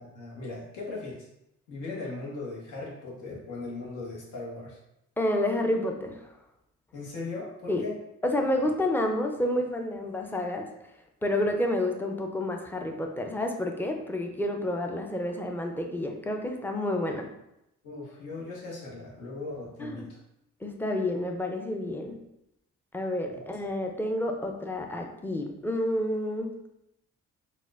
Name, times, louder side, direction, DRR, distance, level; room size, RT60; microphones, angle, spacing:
voice 1, 0.1-1.3 1.7-4.8 6.9-8.0 17.8-20.2, left 3 dB, 80° left, -5 dB, 1.1 m, -38 dB
voice 2, 5.2-6.3 7.7-7.8 8.2-10.7 11.2-17.3 19.8-20.0 20.6-22.2 22.9-26.5, left 1 dB, 5° left, 3 dB, 0.4 m, -29 dB
4.1 x 2.3 x 2.4 m, 0.83 s
cardioid pair, 90°, 30 cm